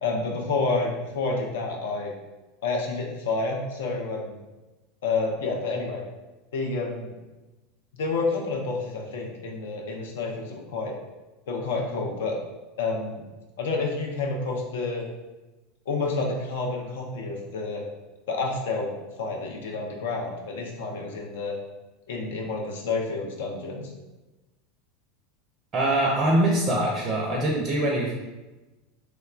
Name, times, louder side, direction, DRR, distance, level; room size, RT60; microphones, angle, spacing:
voice 1, 0.0-2.1 2.6-4.3 5.0-6.0 6.5-7.1 7.9-10.9 11.5-12.4 12.8-13.2 13.6-15.0 15.9-17.8 18.3-18.9 19.2-21.6 22.1-23.9, left 3 dB, 70° left, 0 dB, 0.5 m, -29 dB
voice 2, 25.7-28.1, right 1 dB, 30° right, -1 dB, 0.5 m, -23 dB
3.0 x 2.1 x 2.3 m, 1.1 s
figure-of-eight pair, 80°, 0 cm